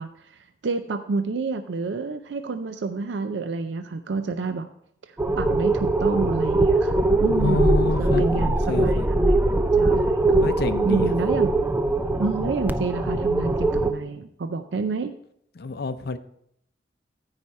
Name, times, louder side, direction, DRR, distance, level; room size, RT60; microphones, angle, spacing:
voice 1, 0.0-4.7 5.1-9.4 9.8-10.2 10.8-11.5 12.2-15.1, right 3 dB, 85° right, 0.5 m, -29 dB
sound 1, 5.2-13.9, right 2 dB, 10° right, 0.4 m, -21 dB
voice 2, 7.4-9.1 10.4-11.1 15.6-16.2, left 3 dB, 65° left, 0.6 m, -28 dB
14.0 x 5.0 x 4.2 m
head